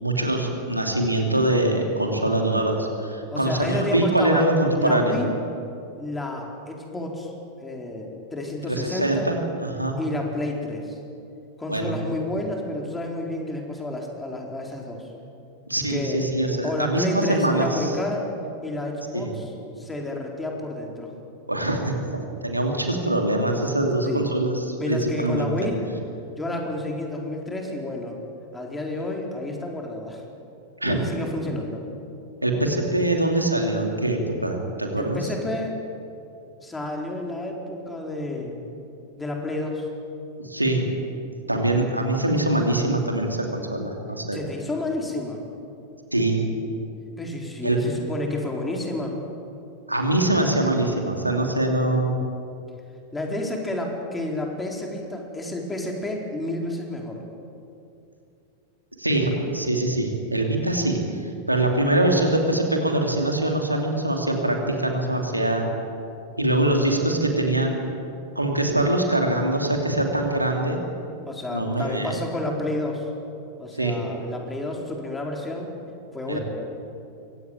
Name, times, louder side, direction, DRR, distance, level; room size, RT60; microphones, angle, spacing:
voice 1, 0.0-5.2 8.6-10.0 11.7-12.0 15.7-18.0 19.1-19.3 21.5-25.5 30.8-31.0 32.4-35.2 40.4-40.9 41.5-44.4 46.1-46.6 47.6-47.8 49.9-52.1 59.0-65.7 66.4-67.8 68.3-70.8 71.5-72.2 73.7-74.0 76.3-76.4, right 1 dB, 85° right, 2 dB, 2.9 m, -23 dB
voice 2, 3.3-4.5 4.8-5.3 6.0-7.3 7.6-9.3 10.0-11.0 11.6-15.1 15.9-16.2 16.6-18.3 18.6-19.5 19.8-21.1 24.1-24.2 24.8-25.8 26.4-28.2 28.5-30.2 30.8-31.8 35.0-35.8 36.6-38.6 39.2-39.9 44.3-45.4 47.2-49.2 53.1-57.2 71.3-73.1 73.6-75.7 76.1-76.4, left 1 dB, 10° left, 0 dB, 4.3 m, -30 dB
23.5 x 17.5 x 9.1 m, 2.6 s
figure-of-eight pair, 90°, 0 cm